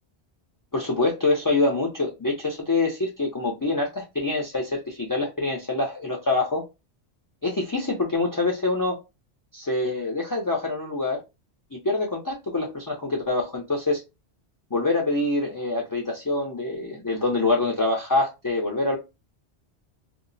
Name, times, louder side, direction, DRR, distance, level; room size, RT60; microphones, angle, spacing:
voice 1, 0.7-6.6 7.4-9.0 9.5-11.2 11.7-14.0 14.7-19.0, left 2 dB, 30° left, -1 dB, 0.4 m, -25 dB
2.6 x 2.0 x 3.8 m, 0.25 s
omnidirectional pair, 1.2 m